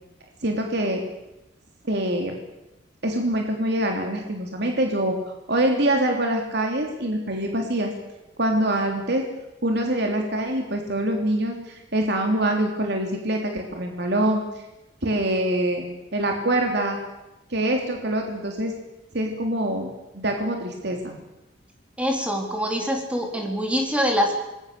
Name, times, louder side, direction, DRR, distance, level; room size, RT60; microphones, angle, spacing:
voice 1, 0.4-1.0 1.8-2.3 3.0-5.2 5.5-7.9 8.4-9.3 9.6-14.4 15.0-15.8 16.1-17.0 17.5-18.7 19.1-19.9 20.1-21.1, right 1 dB, 60° right, 2 dB, 3.3 m, -24 dB
voice 2, 22.0-24.4, equal, 5° right, 1 dB, 4.1 m, -24 dB
26.5 x 21.5 x 6.9 m, 0.97 s
head